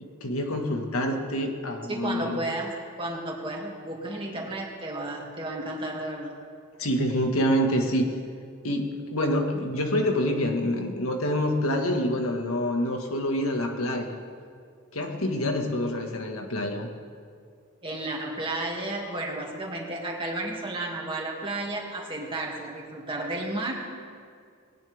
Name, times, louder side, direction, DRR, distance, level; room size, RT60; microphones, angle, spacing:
voice 1, 0.0-2.4 6.8-8.1 8.6-14.2 14.9-16.9, equal, 85° left, 3 dB, 1.7 m, -27 dB
voice 2, 1.9-2.7 3.0-6.3 17.8-23.9, right 2 dB, 25° right, -2 dB, 2.4 m, -32 dB
19.5 x 17.5 x 3.5 m, 2.2 s
head